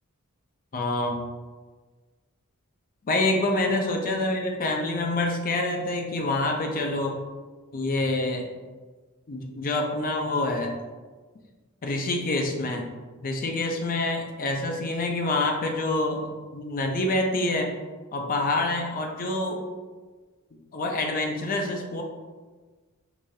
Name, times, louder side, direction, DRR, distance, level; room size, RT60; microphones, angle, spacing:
voice 1, 0.7-1.2 3.1-7.1 7.7-8.5 9.3-10.7 11.8-12.9 13.2-17.7 18.1-19.6 20.5-22.0, left 2 dB, 40° left, 2 dB, 0.4 m, -27 dB
4.8 x 2.3 x 2.7 m, 1.3 s
head